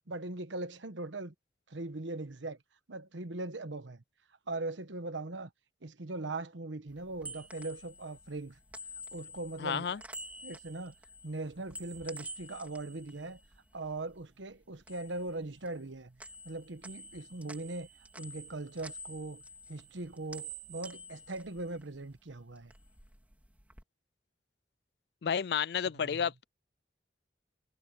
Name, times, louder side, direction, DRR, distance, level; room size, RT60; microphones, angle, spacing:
voice 1, 0.1-1.3 1.7-2.6 2.9-4.0 4.5-5.5 5.8-8.6 9.1-10.0 10.4-10.9 11.2-13.4 13.7-17.9 18.2-19.4 19.7-22.7 26.0-26.2, right 2 dB, 90° right, 1.2 m, -40 dB
sound 1, 6.9-14.2 14.5-15.9 16.2-22.2 22.5-23.8, right 1 dB, 10° right, 3.4 m, -49 dB
voice 2, 9.6-10.0 25.2-26.4, left 7 dB, 65° left, 0.4 m, -31 dB
head